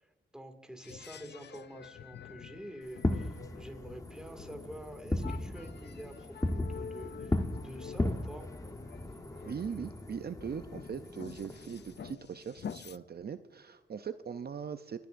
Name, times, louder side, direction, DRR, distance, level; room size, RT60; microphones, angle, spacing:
voice 1, 0.0-8.5, equal, 5° right, 5 dB, 2.1 m, -47 dB
sound 1, 0.8-13.0, left 7 dB, 60° left, 0.5 m, -48 dB
Fireworks, 2.9-12.1, left 1 dB, 15° left, 1.1 m, -37 dB
voice 2, 9.4-15.1, right 7 dB, 55° right, 10 dB, 0.5 m, -40 dB
28.5 x 10.5 x 2.6 m, 1.2 s
cardioid pair, 70°, 20 cm